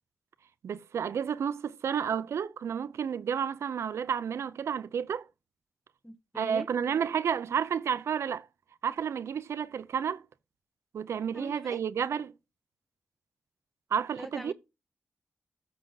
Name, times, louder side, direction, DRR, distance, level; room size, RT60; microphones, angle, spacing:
voice 1, 0.6-5.3 6.3-8.5 8.8-10.2 10.9-12.3 13.9-14.5, right 7 dB, 85° right, 0.6 m, -31 dB
voice 2, 6.0-6.7 11.3-11.8 14.2-14.5, equal, ahead, 0.7 m, -42 dB
13.5 x 6.5 x 3.9 m
cardioid pair, 75°, 5 cm